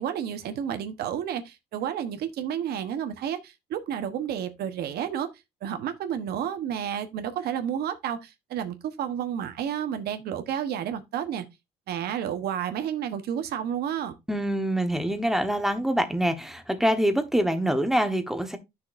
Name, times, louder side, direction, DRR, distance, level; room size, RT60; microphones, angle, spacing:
voice 1, 0.0-5.3 5.6-11.4 11.9-14.1, right 9 dB, 70° right, 1.1 m, -31 dB
voice 2, 14.3-18.6, equal, ahead, 1.2 m, -25 dB
9.7 x 6.2 x 2.6 m
cardioid pair, 110°, 17 cm